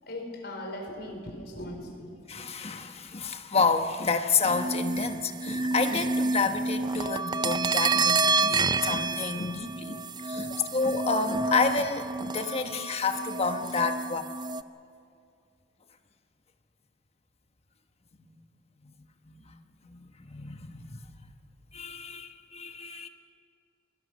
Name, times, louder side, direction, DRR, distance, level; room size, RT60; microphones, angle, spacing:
voice 1, 0.0-2.4, left 1 dB, 65° left, 3 dB, 4.3 m, -39 dB
voice 2, 2.3-14.2 18.1-18.4 18.8-18.9 19.3-19.6 19.8-21.0 21.7-23.1, left 4 dB, 35° left, 7 dB, 1.2 m, -30 dB
sound 1, 4.5-14.6, right 3 dB, 25° right, 0.5 m, -29 dB
27.5 x 21.5 x 6.3 m, 2.3 s
head